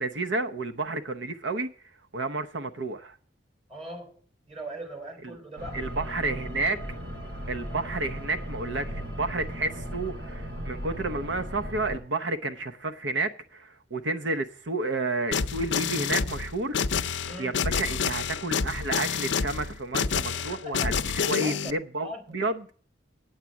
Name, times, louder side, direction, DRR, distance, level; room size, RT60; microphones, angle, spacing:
voice 1, 0.0-1.7 2.1-3.2 5.7-6.8 7.5-17.0 17.4-22.7, right 2 dB, 80° right, 0.9 m, -31 dB
voice 2, 3.7-5.9 17.2-17.7 20.3-21.1 21.4-22.4, right 1 dB, 35° right, 3.4 m, -41 dB
sound 1, 5.6-12.0, equal, 60° right, 2.7 m, -37 dB
sound 2, 15.3-21.7, left 6 dB, 70° left, 0.6 m, -28 dB
9.1 x 8.1 x 7.2 m
head